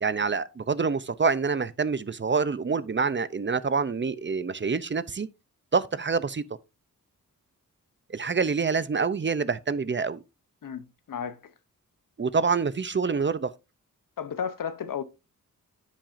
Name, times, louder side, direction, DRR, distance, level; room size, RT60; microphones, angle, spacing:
voice 1, 0.0-5.3 5.7-6.4 8.1-10.2 12.2-13.5, right 5 dB, 35° right, 0.7 m, -26 dB
voice 2, 10.6-11.5 14.2-15.0, left 7 dB, 75° left, 1.0 m, -33 dB
9.9 x 7.4 x 2.7 m
cardioid pair, 70°, 33 cm